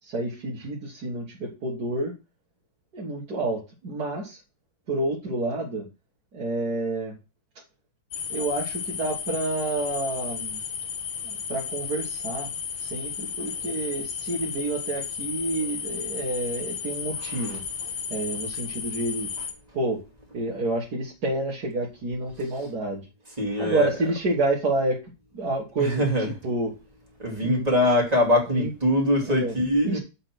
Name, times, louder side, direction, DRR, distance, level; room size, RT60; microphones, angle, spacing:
voice 1, 0.0-2.1 2.9-4.4 4.9-5.9 6.3-7.1 8.3-10.6 11.2-12.5 12.8-17.6 18.1-19.3 19.7-20.0 20.3-23.1 23.6-26.1 26.4-26.7 27.4-27.7 28.5-28.7 29.2-29.6 29.8-30.0, right 2 dB, 55° right, 2.3 m, -29 dB
sound 1, 8.1-19.5, left 7 dB, 85° left, 2.0 m, -33 dB
voice 2, 23.4-23.9 25.8-26.3 27.2-30.0, left 1 dB, 20° right, 2.5 m, -23 dB
7.7 x 4.3 x 6.0 m
omnidirectional pair, 2.1 m